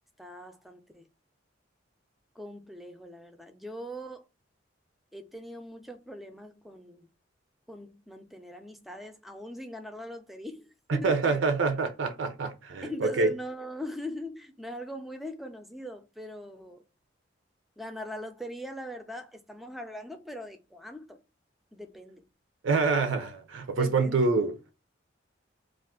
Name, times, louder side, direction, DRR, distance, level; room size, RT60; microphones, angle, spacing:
voice 1, 0.2-1.1 2.4-4.2 5.1-7.1 7.7-11.4 12.8-16.8 17.8-21.2 21.7-22.2 23.8-24.3, equal, ahead, 0.4 m, -41 dB
voice 2, 10.9-13.3 22.6-24.6, right 4 dB, 90° right, 0.5 m, -26 dB
2.4 x 2.4 x 3.5 m
head